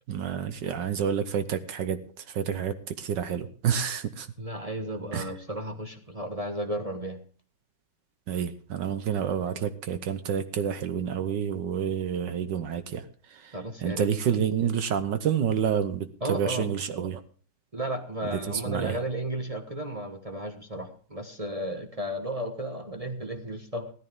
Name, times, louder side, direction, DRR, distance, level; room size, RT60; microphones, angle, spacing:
voice 1, 0.1-2.0 2.3-4.3 5.1-5.3 8.3-13.0 13.3-17.2 18.3-19.0, right 8 dB, 65° right, 10 dB, 1.4 m, -29 dB
voice 2, 4.4-7.2 13.5-14.1 16.2-16.7 17.7-23.9, right 1 dB, 20° right, 3 dB, 1.0 m, -33 dB
16.5 x 13.5 x 3.6 m, 0.42 s
omnidirectional pair, 2.3 m